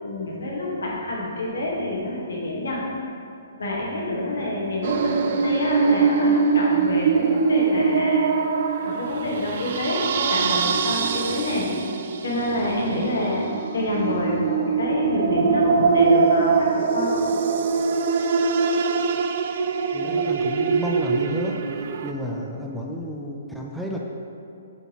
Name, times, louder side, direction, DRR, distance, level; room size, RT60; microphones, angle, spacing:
voice 1, 0.0-2.8 3.6-8.3 8.8-11.7 12.2-13.4 13.7-17.1, left 1 dB, 75° left, -4 dB, 1.4 m, -27 dB
sound 1, 4.8-22.1, right 5 dB, 55° right, 0.3 m, -23 dB
voice 2, 19.9-21.6 22.0-24.0, equal, ahead, -3 dB, 0.5 m, -31 dB
7.9 x 4.0 x 3.0 m, 2.5 s
figure-of-eight pair, 130°, 0 cm